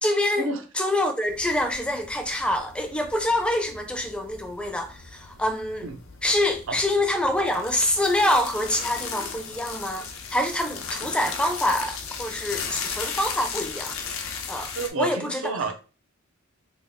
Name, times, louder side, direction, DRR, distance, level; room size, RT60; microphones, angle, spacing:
voice 1, 0.0-0.5 0.8-5.9 6.2-14.0 14.5-15.4, left 1 dB, 5° left, 0.4 m, -26 dB
sound 1, 1.3-14.9, left 6 dB, 80° left, 0.6 m, -36 dB
voice 2, 14.8-15.7, right 3 dB, 75° right, 0.6 m, -29 dB
3.4 x 2.4 x 3.5 m
head